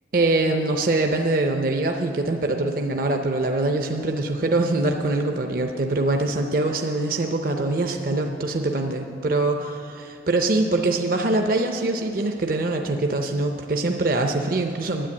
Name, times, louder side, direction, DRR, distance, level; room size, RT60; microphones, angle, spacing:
voice 1, 0.1-15.1, right 2 dB, 50° right, 4 dB, 0.6 m, -23 dB
10.0 x 9.0 x 8.4 m, 2.7 s
head